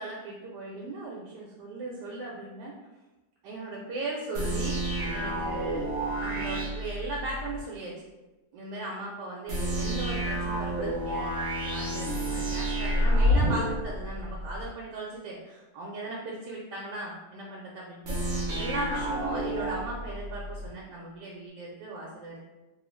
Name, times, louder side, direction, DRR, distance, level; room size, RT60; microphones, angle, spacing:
voice 1, 0.0-2.7 3.4-4.8 5.1-5.8 6.2-8.1 8.5-18.2 18.5-22.4, right 2 dB, 80° right, -3 dB, 1.2 m, -37 dB
sound 1, 4.3-7.6 9.5-14.7 18.0-20.7, equal, 55° right, 0.8 m, -29 dB
3.0 x 2.3 x 3.1 m, 1.1 s
omnidirectional pair, 1.9 m